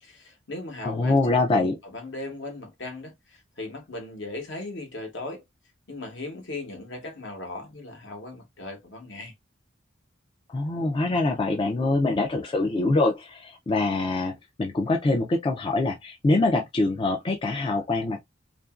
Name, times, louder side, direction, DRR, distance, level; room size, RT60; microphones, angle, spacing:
voice 1, 0.0-1.2 1.4-5.4 5.9-9.3, left 2 dB, 65° left, 1.0 m, -37 dB
voice 2, 0.8-1.7 10.5-14.3 14.6-18.3, left 2 dB, 25° left, 0.3 m, -24 dB
2.8 x 2.5 x 2.3 m
head